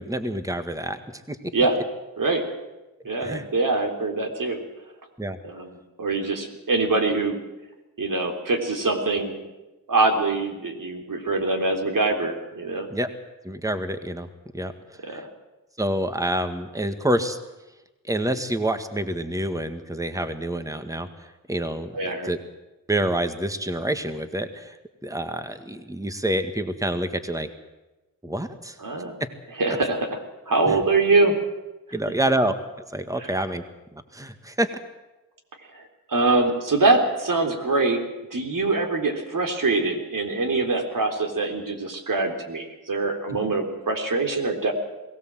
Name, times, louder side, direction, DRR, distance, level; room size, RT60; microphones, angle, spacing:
voice 1, 0.0-1.4 3.2-3.5 5.2-5.4 12.9-13.1 13.4-14.3 14.5-14.7 15.0-15.2 15.8-17.4 18.0-21.9 22.2-22.4 22.9-24.7 25.0-27.5 28.2-28.8 30.7-30.8 31.9-32.5 32.9-33.6 33.9-34.7, right 1 dB, 10° right, 8 dB, 1.8 m, -27 dB
voice 2, 3.0-4.6 5.4-7.4 8.0-9.3 9.9-12.9 15.0-15.3 21.9-22.3 28.8-29.2 29.6-30.2 30.5-31.4 33.2-33.3 35.7-35.8 36.1-38.0 38.3-44.7, right 3 dB, 60° right, 4 dB, 3.7 m, -24 dB
22.0 x 17.0 x 7.7 m, 1.0 s
cardioid pair, 60°, 36 cm